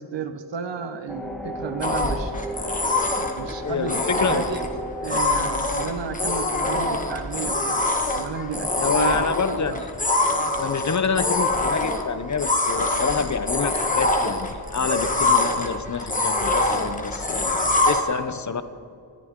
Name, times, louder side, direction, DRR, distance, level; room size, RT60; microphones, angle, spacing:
voice 1, 0.0-2.4 3.4-4.0 4.3-4.7 5.0-9.8, right 5 dB, 85° right, 9 dB, 1.2 m, -33 dB
sound 1, 1.1-6.4, equal, ahead, 1.6 m, -35 dB
sound 2, 1.8-18.0, left 2 dB, 20° left, 1.6 m, -24 dB
voice 2, 3.6-4.5 8.8-9.9 10.6-18.6, left 5 dB, 40° left, 12 dB, 0.8 m, -27 dB
20.0 x 14.0 x 3.7 m, 2.5 s
wide cardioid pair, 100°, 42 cm